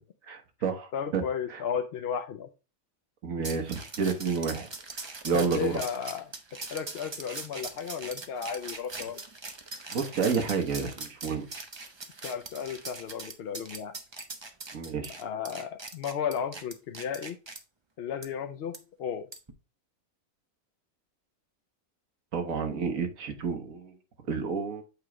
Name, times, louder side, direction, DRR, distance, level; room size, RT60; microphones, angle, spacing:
voice 1, 0.3-1.2 3.2-4.7 5.2-5.7 9.9-11.4 14.7-15.2 22.3-23.9 24.3-24.8, right 5 dB, 70° right, 1.5 m, -30 dB
voice 2, 0.9-2.5 5.3-6.3 6.7-9.2 12.2-13.9 15.2-17.4 18.0-19.3, left 7 dB, 60° left, 0.6 m, -34 dB
sound 1, 3.4-17.6 18.2-18.3 18.7-18.8 19.3-19.5, right 3 dB, 25° right, 0.6 m, -41 dB
8.3 x 3.1 x 4.9 m
omnidirectional pair, 1.5 m